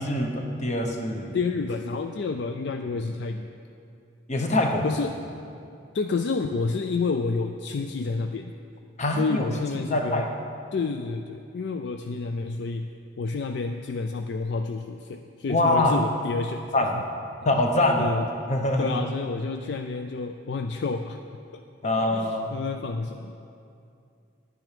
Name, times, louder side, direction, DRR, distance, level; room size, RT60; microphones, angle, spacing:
voice 1, 0.0-1.4 4.3-4.9 9.0-9.5 9.7-10.2 15.5-16.0 16.7-17.1 17.4-19.0 21.8-22.5, left 1 dB, 35° left, 3 dB, 1.0 m, -24 dB
voice 2, 1.3-3.5 4.8-5.2 5.9-8.5 9.2-10.3 10.7-17.0 18.0-18.3 18.8-21.2 21.5-23.4, left 4 dB, 60° left, 6 dB, 0.4 m, -30 dB
11.0 x 9.4 x 5.1 m, 2.6 s
head